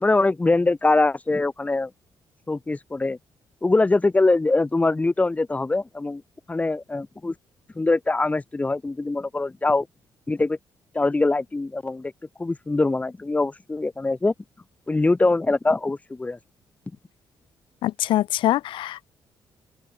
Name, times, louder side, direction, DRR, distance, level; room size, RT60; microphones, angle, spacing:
voice 1, 0.0-1.9 2.5-3.2 3.6-6.2 6.5-7.3 7.7-9.9 10.3-10.6 10.9-12.1 12.4-14.3 14.9-16.4, left 2 dB, 15° left, 1.4 m, -23 dB
voice 2, 17.8-19.1, left 14 dB, 85° left, 0.4 m, -24 dB
open air
cardioid pair, 115°, 8 cm